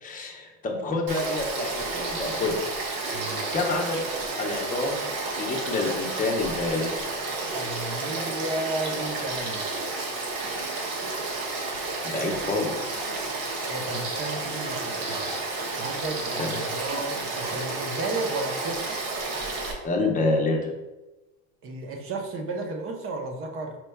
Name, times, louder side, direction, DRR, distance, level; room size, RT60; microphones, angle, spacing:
voice 1, 0.0-2.5 3.5-4.1 4.4-5.0 5.4-6.9 12.0-13.1 16.4-16.5 19.8-20.7, left 2 dB, 20° left, 0 dB, 0.9 m, -27 dB
Frog / Stream, 1.1-19.7, right 3 dB, 75° right, 1.4 m, -31 dB
voice 2, 3.1-3.4 7.5-9.6 13.7-15.2 15.8-18.9 21.6-23.8, right 2 dB, 30° right, 3 dB, 0.8 m, -33 dB
5.0 x 4.5 x 2.3 m, 1.1 s
supercardioid pair, 125°, 41 cm